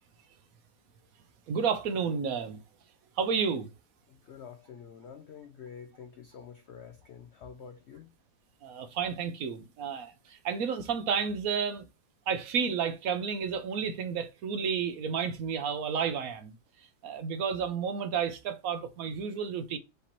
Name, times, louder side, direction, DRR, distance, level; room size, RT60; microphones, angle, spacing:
voice 1, 1.5-2.6 3.2-3.7 8.6-11.9 12.3-19.8, right 6 dB, 65° right, 1.0 m, -31 dB
voice 2, 4.1-8.1, left 7 dB, 70° left, 0.6 m, -48 dB
5.1 x 2.8 x 2.9 m
omnidirectional pair, 1.7 m